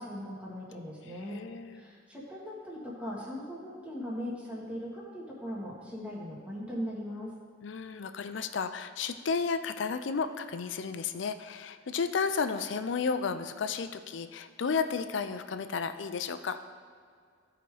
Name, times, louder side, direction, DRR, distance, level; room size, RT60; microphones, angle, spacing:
voice 1, 0.0-1.4 1.7-7.3, equal, 5° right, -6 dB, 1.8 m, -39 dB
voice 2, 1.2-1.8 7.6-16.6, left 5 dB, 70° left, 10 dB, 0.5 m, -33 dB
14.5 x 4.9 x 3.4 m, 2.1 s
head